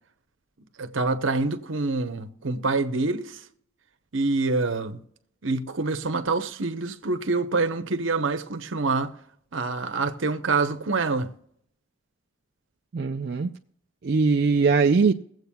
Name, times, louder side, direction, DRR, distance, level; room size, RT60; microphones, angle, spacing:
voice 1, 0.8-3.4 4.1-5.0 5.4-9.1 9.5-11.3, right 3 dB, 75° right, 0.9 m, -26 dB
voice 2, 12.9-13.5 14.0-15.1, right 4 dB, 55° right, 0.4 m, -21 dB
22.5 x 7.9 x 2.3 m
head